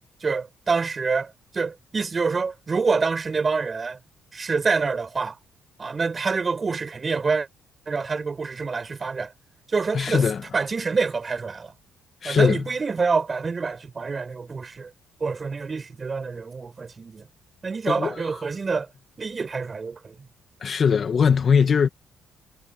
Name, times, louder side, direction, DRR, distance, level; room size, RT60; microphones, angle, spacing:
voice 1, 0.2-4.0 4.3-5.4 5.8-7.5 7.9-9.3 9.7-10.3 10.5-11.7 12.2-14.9 15.2-17.3 17.6-18.9 19.2-20.3, right 4 dB, 35° right, 8.0 m, -26 dB
voice 2, 9.9-10.4 12.2-12.6 17.9-18.1 20.6-21.9, left 6 dB, 50° left, 2.1 m, -20 dB
cardioid pair, 90°, 0 cm